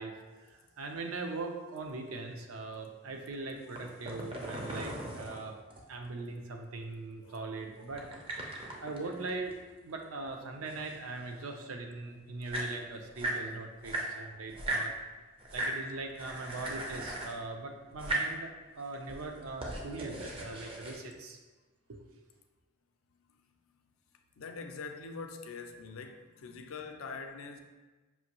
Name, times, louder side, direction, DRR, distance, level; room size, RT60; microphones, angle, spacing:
voice 1, 0.4-5.5 5.9-8.1 8.8-9.5 9.8-14.9 15.5-21.4 21.9-22.0, right 3 dB, 75° right, 3 dB, 0.5 m, -40 dB
voice 2, 3.4-3.8 7.2-7.6 13.9-14.4 15.9-16.0 18.3-18.4 24.4-27.6, left 4 dB, 70° left, 5 dB, 0.4 m, -45 dB
sound 1, 3.6-6.1 7.9-10.0 10.3-11.5 12.1-12.2 12.3-13.4 13.8-14.9 15.4-15.8 16.1-17.4 17.9-18.3 18.9-21.0, right 1 dB, 25° right, 0.5 m, -38 dB
5.6 x 2.6 x 2.9 m, 1.2 s
head